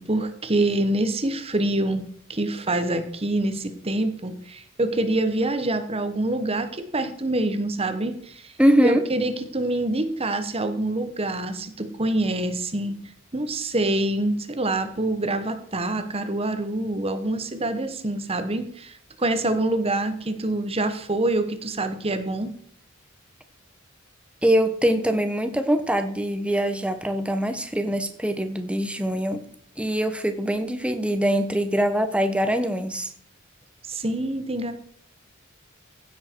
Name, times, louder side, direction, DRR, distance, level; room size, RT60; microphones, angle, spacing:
voice 1, 0.0-2.0 2.3-8.5 8.8-13.0 13.3-22.5 33.9-34.7, right 2 dB, 25° right, 9 dB, 1.2 m, -26 dB
voice 2, 8.6-9.0 24.4-29.4 29.8-33.1, equal, 5° right, 8 dB, 1.1 m, -23 dB
16.0 x 7.4 x 4.6 m, 0.64 s
head